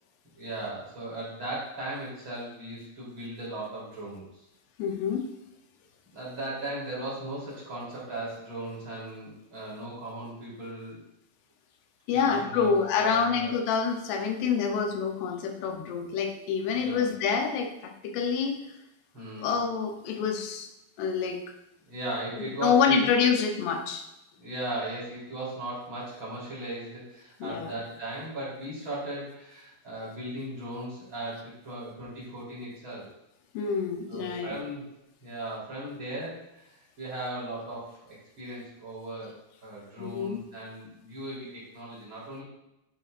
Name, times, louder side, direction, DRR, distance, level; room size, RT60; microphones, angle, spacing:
voice 1, 0.4-4.2 6.1-11.0 12.1-12.7 13.0-13.5 16.7-17.1 19.1-19.6 21.9-23.4 24.4-33.1 34.1-34.9 35.2-39.3 39.6-42.4, right 1 dB, 30° right, -7 dB, 3.8 m, -37 dB
voice 2, 4.8-5.3 12.1-18.6 19.4-20.7 21.0-21.4 22.4-24.1 27.4-27.7 33.5-34.6 40.0-40.4, left 6 dB, 85° left, 4 dB, 3.0 m, -27 dB
11.0 x 8.0 x 2.5 m, 0.89 s
omnidirectional pair, 4.7 m